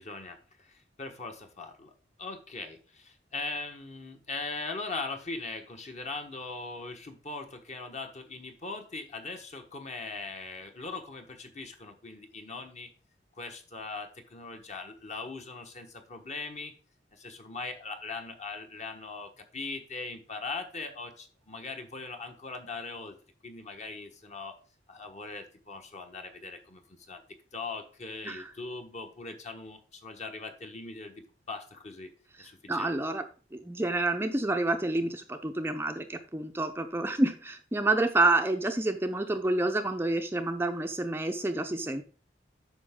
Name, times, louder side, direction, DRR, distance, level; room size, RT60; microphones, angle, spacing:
voice 1, 0.0-1.9 2.2-12.9 13.3-16.7 17.1-23.2 23.4-24.6 24.9-27.2 27.5-32.1 32.4-32.9, left 3 dB, 40° left, 5 dB, 1.3 m, -40 dB
voice 2, 32.7-33.2 33.5-42.0, right 2 dB, 15° right, 6 dB, 0.6 m, -28 dB
8.7 x 5.9 x 3.7 m, 0.38 s
head